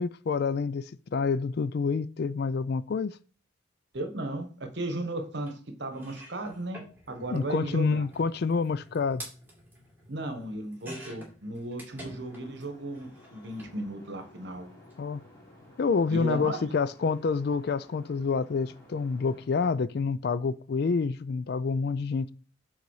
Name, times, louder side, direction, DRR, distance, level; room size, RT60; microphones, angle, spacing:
voice 1, 0.0-3.2 7.3-9.2 15.0-15.2 15.8-22.3, left 5 dB, 50° left, 0.3 m, -28 dB
voice 2, 3.9-6.8 7.1-8.0 10.1-14.7 16.1-16.7, right 1 dB, 55° right, 1.2 m, -35 dB
sound 1, 5.5-5.6 5.9-12.6 12.9-13.7 14.7-14.9 15.2-15.3, right 1 dB, 10° right, 2.4 m, -49 dB
sound 2, 11.9-19.5, left 1 dB, 15° left, 2.7 m, -53 dB
6.8 x 4.0 x 4.8 m
head